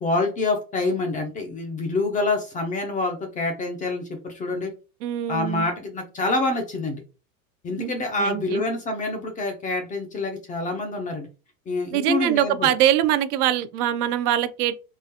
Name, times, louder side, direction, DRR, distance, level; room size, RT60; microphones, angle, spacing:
voice 1, 0.0-4.7 5.3-7.0 7.6-11.3 11.7-12.7, left 2 dB, 15° left, 0.4 m, -26 dB
voice 2, 5.0-5.7 7.8-8.6 11.9-14.8, right 11 dB, 65° right, 0.6 m, -23 dB
3.7 x 2.4 x 2.7 m
supercardioid pair, 130°, 49 cm